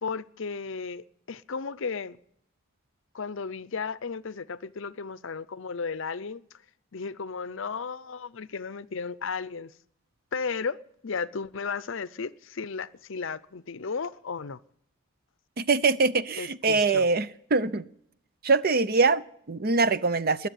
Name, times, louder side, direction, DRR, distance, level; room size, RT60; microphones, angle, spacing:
voice 1, 0.0-2.2 3.1-6.4 6.9-9.7 10.3-10.8 11.0-14.6 16.4-17.1, left 5 dB, 55° left, 0.6 m, -34 dB
voice 2, 15.6-17.9 18.4-20.5, right 4 dB, 45° right, 0.6 m, -23 dB
21.0 x 7.3 x 9.3 m
head